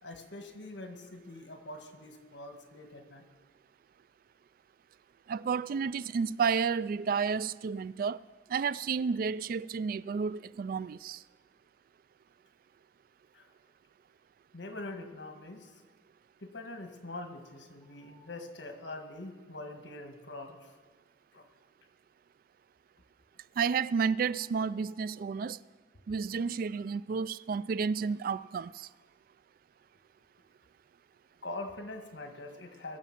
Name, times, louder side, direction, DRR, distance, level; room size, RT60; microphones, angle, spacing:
voice 1, 0.0-3.2 13.3-13.5 14.5-15.7 16.4-20.7 21.3-21.4 31.4-33.0, left 2 dB, 80° left, 1.7 m, -44 dB
voice 2, 5.3-8.2 8.5-11.2 23.6-25.6 26.1-28.7, right 5 dB, 50° right, 0.3 m, -31 dB
sound 1, 17.8-18.7 23.3-23.4 24.1-25.4, left 2 dB, 10° left, 5.1 m, -65 dB
21.5 x 7.2 x 5.9 m
head